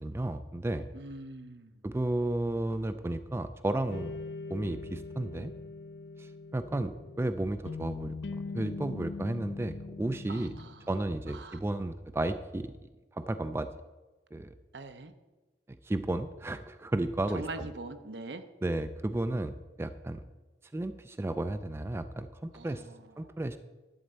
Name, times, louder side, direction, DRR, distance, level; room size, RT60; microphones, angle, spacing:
voice 1, 0.0-0.8 1.8-4.1 4.5-5.5 6.2-6.9 7.2-8.1 8.5-10.5 10.9-12.7 13.1-13.7 14.3-14.5 15.8-17.7 18.6-19.5 19.8-20.2 20.7-22.8 23.2-23.6, right 1 dB, 15° right, 10 dB, 0.3 m, -33 dB
voice 2, 0.9-1.8 10.3-10.9 11.3-11.6 14.7-15.1 17.3-18.4 22.5-23.3, right 2 dB, 75° right, 9 dB, 0.8 m, -43 dB
sound 1, 3.9-11.3, left 3 dB, 70° left, 0.4 m, -42 dB
11.5 x 4.2 x 7.9 m, 1.2 s
head